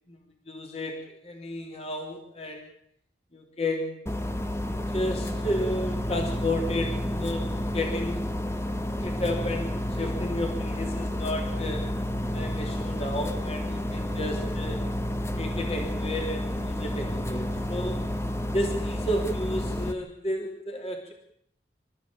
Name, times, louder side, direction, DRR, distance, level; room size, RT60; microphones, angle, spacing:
voice 1, 0.5-2.7 3.3-4.0 4.9-8.3 9.0-11.9 12.3-14.8 15.4-18.0 18.5-21.1, left 1 dB, 35° left, 2 dB, 3.3 m, -32 dB
sound 1, 4.1-19.9, left 1 dB, 15° left, 1.2 m, -30 dB
27.5 x 13.5 x 8.9 m, 0.70 s
head